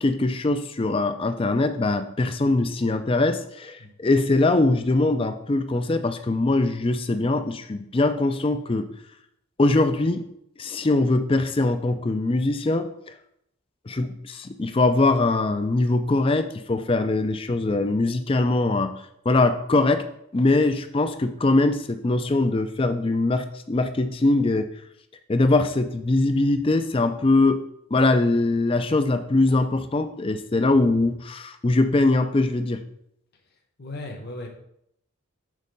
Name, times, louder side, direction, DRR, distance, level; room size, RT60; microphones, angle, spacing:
voice 1, 0.0-8.9 9.6-10.2 10.6-12.9 13.9-18.9 19.3-20.0 20.3-24.7 25.3-27.6 27.9-32.8, left 2 dB, 25° left, 9 dB, 0.4 m, -22 dB
voice 2, 33.8-34.5, left 2 dB, 45° left, 2 dB, 0.9 m, -36 dB
6.4 x 4.1 x 5.2 m, 0.76 s
head